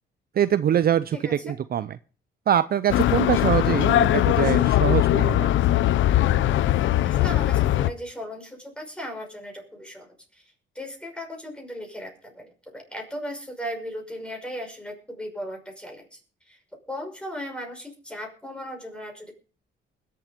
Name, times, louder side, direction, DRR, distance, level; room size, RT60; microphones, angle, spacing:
voice 1, 0.4-1.9 2.5-5.5, right 10 dB, 50° right, 15 dB, 0.5 m, -23 dB
voice 2, 1.1-1.5 7.0-16.2 16.4-16.6 16.9-19.3, equal, 5° left, 2 dB, 5.7 m, -37 dB
sound 1, 2.9-7.9, left 13 dB, 75° left, 0.6 m, -20 dB
21.0 x 7.7 x 5.3 m, 0.40 s
cardioid pair, 90°, 20 cm